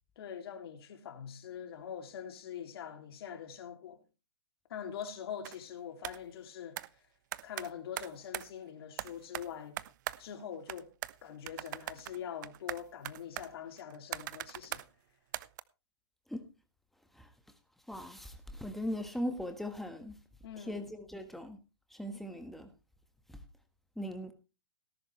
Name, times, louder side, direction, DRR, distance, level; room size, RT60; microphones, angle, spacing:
voice 1, 0.2-4.0 4.7-6.8 7.4-9.8 10.2-10.9 11.2-14.8 20.4-20.9, left 8 dB, 55° left, 2.8 m, -43 dB
sound 1, 5.4-5.6 6.0-6.2 6.8-6.9 7.3-8.5 9.0-10.4 10.7-11.2 11.5-14.9 15.3-15.6, right 15 dB, 40° right, 0.7 m, -41 dB
voice 2, 17.9-20.1 20.7-21.6 21.9-22.7 24.0-24.3, equal, ahead, 1.5 m, -39 dB
18.0 x 11.0 x 3.2 m
hypercardioid pair, 140°, 15 cm